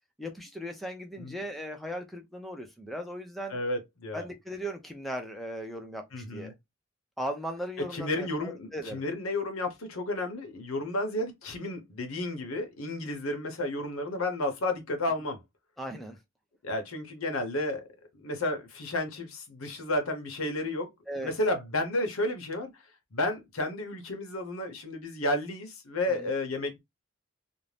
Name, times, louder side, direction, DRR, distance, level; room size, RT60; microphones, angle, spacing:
voice 1, 0.2-3.6 4.1-6.5 7.2-9.0 15.8-16.2 21.1-21.3 26.1-26.3, equal, ahead, 0.5 m, -38 dB
voice 2, 3.5-4.2 6.1-6.5 7.9-15.4 16.6-17.8 18.1-20.9 21.2-22.8 23.1-26.8, left 1 dB, 80° left, 0.8 m, -32 dB
2.6 x 2.1 x 3.2 m
head